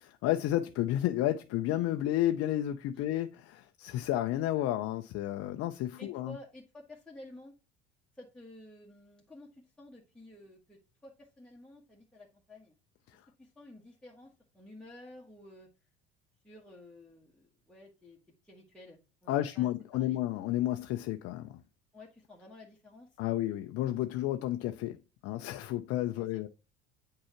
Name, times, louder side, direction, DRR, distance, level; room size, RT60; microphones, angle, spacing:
voice 1, 0.0-6.4 13.1-13.2 19.3-21.6 23.2-25.0 25.2-26.5, left 13 dB, 50° left, 0.6 m, -31 dB
voice 2, 6.0-7.5 8.1-12.7 13.4-15.7 16.4-18.2 18.4-20.2 21.9-23.1 26.2-26.5, left 1 dB, 5° left, 1.5 m, -52 dB
8.6 x 4.7 x 2.9 m
hypercardioid pair, 65°, 32 cm